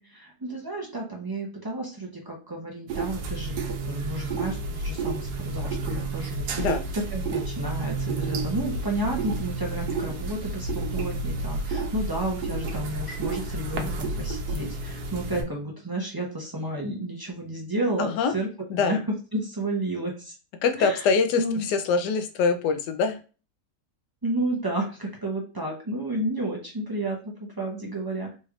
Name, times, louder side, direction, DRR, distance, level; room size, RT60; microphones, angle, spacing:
voice 1, 0.0-18.5 18.8-19.0 19.3-20.3 20.8-21.0 21.4-21.6 24.2-28.3, right 1 dB, 40° right, -2 dB, 0.3 m, -31 dB
sound 1, 2.9-15.4, right 3 dB, 75° right, 1.2 m, -30 dB
voice 2, 18.0-18.3 18.7-19.0 20.6-23.2, left 5 dB, 90° left, 8 dB, 1.2 m, -24 dB
4.1 x 3.1 x 2.4 m, 0.34 s
omnidirectional pair, 1.7 m